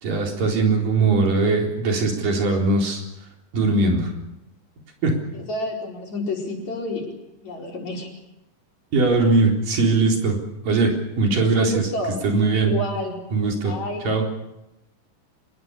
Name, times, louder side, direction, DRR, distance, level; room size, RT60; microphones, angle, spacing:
voice 1, 0.0-3.0 3.5-4.1 5.0-5.1 8.9-10.4 10.7-11.8 12.2-12.7 13.3-13.7 14.1-14.2, right 3 dB, 80° right, 1 dB, 5.7 m, -20 dB
voice 2, 5.3-7.1 7.4-8.1 11.4-12.2 12.5-13.2 13.6-14.1, left 2 dB, 55° left, 0 dB, 5.9 m, -29 dB
26.5 x 21.0 x 6.8 m, 0.89 s
omnidirectional pair, 3.8 m